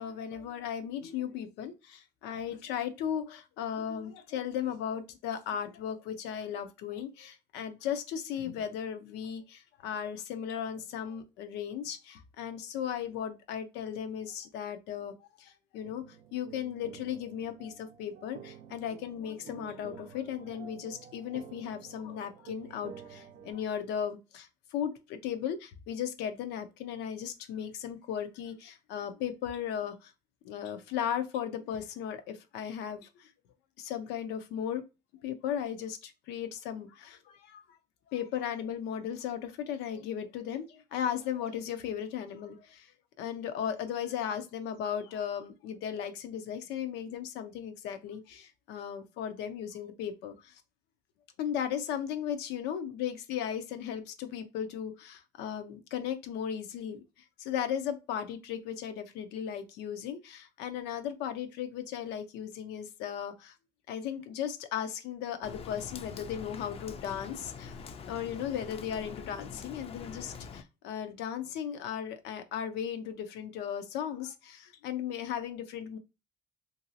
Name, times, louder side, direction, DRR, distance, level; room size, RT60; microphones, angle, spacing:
voice 1, 0.0-30.1 30.4-33.3 33.8-34.8 35.2-37.6 38.1-42.9 43.2-50.6 51.4-57.0 57.4-63.5 63.9-67.8 68.1-76.0, left 9 dB, 90° left, 0.5 m, -36 dB
sound 1, 15.8-23.5, right 8 dB, 80° right, 0.6 m, -50 dB
Rain, 65.4-70.6, left 6 dB, 35° left, 0.4 m, -44 dB
2.9 x 2.6 x 2.7 m
cardioid pair, 110°, 17 cm